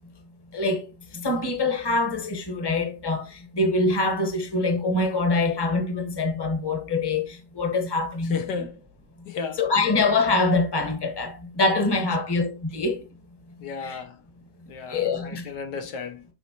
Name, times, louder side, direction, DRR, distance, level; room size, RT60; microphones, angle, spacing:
voice 1, 0.5-8.4 9.6-13.0 13.8-14.0 14.9-15.4, left 3 dB, 15° left, 1.2 m, -24 dB
voice 2, 8.3-8.8 9.3-9.6 13.6-14.2 14.7-16.3, left 5 dB, 70° left, 1.4 m, -34 dB
7.3 x 5.7 x 2.9 m
omnidirectional pair, 2.0 m